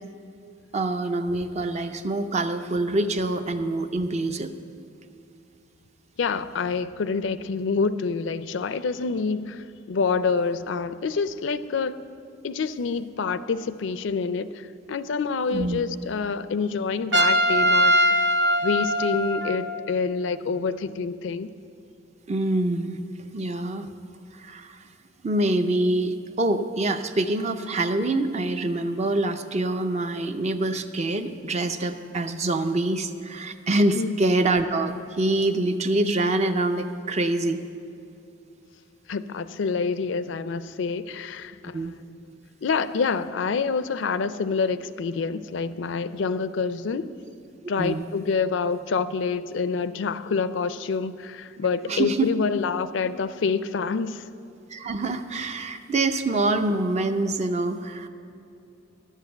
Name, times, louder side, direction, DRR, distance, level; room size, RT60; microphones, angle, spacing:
voice 1, 0.7-4.5 15.5-15.8 22.3-23.0 23.3-23.9 24.3-24.9 25.2-37.6 41.7-41.9 47.8-48.1 51.9-52.3 54.7-58.1, right 2 dB, 35° right, 0.5 m, -25 dB
voice 2, 6.2-12.0 12.4-18.0 18.6-21.5 33.9-34.2 39.1-42.2 42.6-47.2 47.7-54.3, left 5 dB, 70° left, 0.4 m, -27 dB
Trumpet, 17.1-19.8, equal, 70° right, 0.9 m, -21 dB
11.0 x 7.3 x 7.8 m
head